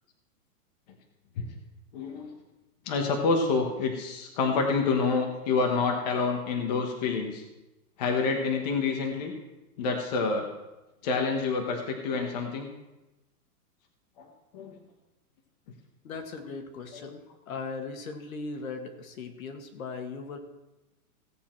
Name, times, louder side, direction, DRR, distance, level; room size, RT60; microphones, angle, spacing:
voice 1, 1.9-2.3 2.8-7.4 8.0-9.3 9.8-10.5 11.0-12.7 14.2-14.3 14.5-14.8 16.9-17.1, left 4 dB, 25° left, 2 dB, 1.1 m, -28 dB
voice 2, 16.0-20.4, left 4 dB, 60° left, 5 dB, 1.9 m, -38 dB
16.5 x 8.3 x 4.4 m, 1.0 s
hypercardioid pair, 175°, 45 cm